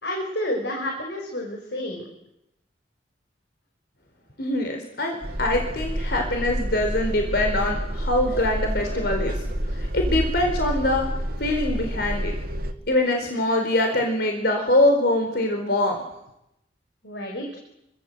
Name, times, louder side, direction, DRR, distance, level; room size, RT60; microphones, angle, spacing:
voice 1, 0.0-2.1 17.0-17.6, left 1 dB, 75° left, 1 dB, 5.8 m, -30 dB
voice 2, 4.4-9.4 9.8-11.1 11.4-12.3 12.9-16.0, left 1 dB, 60° left, 3 dB, 4.5 m, -23 dB
sound 1, 5.2-12.7, equal, 55° right, 2.4 m, -29 dB
30.0 x 24.5 x 8.1 m, 0.85 s
head